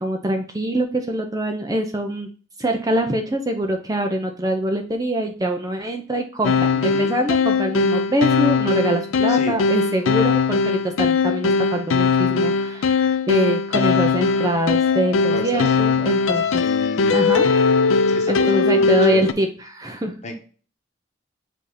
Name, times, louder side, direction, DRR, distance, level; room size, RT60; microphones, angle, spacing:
voice 1, 0.0-2.3 2.6-16.7 17.1-17.5 18.3-20.1, right 1 dB, 20° right, 4 dB, 0.6 m, -24 dB
sound 1, 6.4-19.3, left 5 dB, 90° left, 0.5 m, -20 dB
voice 2, 6.7-7.1 9.3-9.6 15.3-15.7 16.4-17.3 18.1-19.3 20.2-20.4, left 1 dB, 35° left, 2 dB, 1.2 m, -32 dB
7.6 x 2.8 x 5.0 m, 0.39 s
head